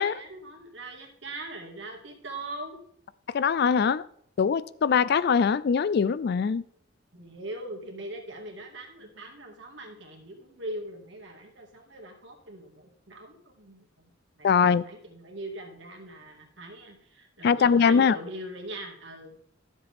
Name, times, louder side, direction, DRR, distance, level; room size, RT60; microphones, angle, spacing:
voice 1, 0.0-2.8 7.1-14.1 14.4-19.4, right 1 dB, 65° right, 2 dB, 2.1 m, -41 dB
voice 2, 3.3-4.0 4.4-6.6 14.4-14.8 17.4-18.2, left 6 dB, 55° left, 18 dB, 0.3 m, -22 dB
12.5 x 7.3 x 3.5 m, 0.64 s
head